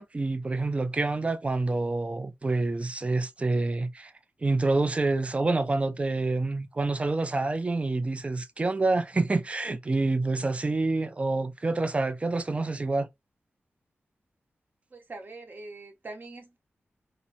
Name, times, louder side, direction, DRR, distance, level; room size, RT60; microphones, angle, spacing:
voice 1, 0.0-4.1 4.4-13.1, right 3 dB, 30° right, 0.4 m, -27 dB
voice 2, 14.9-16.6, right 2 dB, 50° right, 0.8 m, -43 dB
2.8 x 2.1 x 2.6 m
wide cardioid pair, 90°, 4 cm